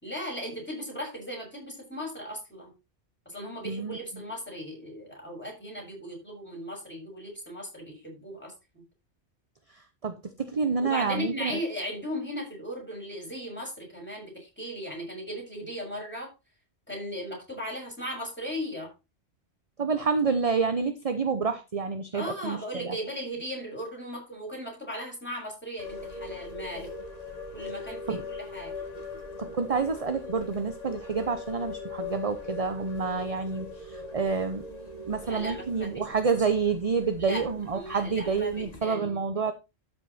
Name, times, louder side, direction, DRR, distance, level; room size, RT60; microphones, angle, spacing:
voice 1, 0.0-2.7 3.3-8.8 10.8-16.3 16.9-18.9 22.1-26.9 27.5-28.7 35.2-36.0 37.2-37.4 37.7-39.2, equal, 10° left, -2 dB, 6.8 m, -37 dB
voice 2, 3.6-4.0 10.0-11.5 19.8-22.9 28.1-28.2 29.4-34.7 35.0-39.5, right 5 dB, 35° right, 9 dB, 0.9 m, -28 dB
sound 1, 25.8-38.8, left 4 dB, 35° left, 2.2 m, -41 dB
13.0 x 6.2 x 4.3 m, 0.27 s
omnidirectional pair, 1.2 m